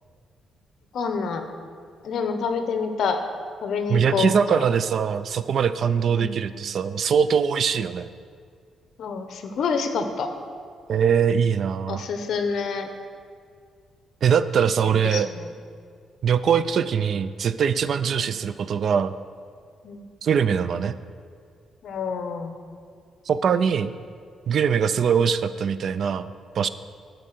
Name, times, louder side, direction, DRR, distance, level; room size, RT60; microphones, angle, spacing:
voice 1, 0.9-1.5 2.0-3.2 3.6-4.6 6.1-6.4 9.0-10.3 11.9-12.9 15.0-15.4 18.2-18.3 19.8-20.1 21.8-22.6, left 5 dB, 55° left, 7 dB, 0.9 m, -27 dB
voice 2, 3.9-8.1 10.9-12.0 14.2-15.3 16.2-19.1 20.2-21.0 23.3-23.9 24.5-26.3 26.6-26.7, right 7 dB, 50° right, 14 dB, 0.3 m, -22 dB
13.0 x 4.6 x 6.6 m, 2.1 s
cardioid pair, 160°, 0 cm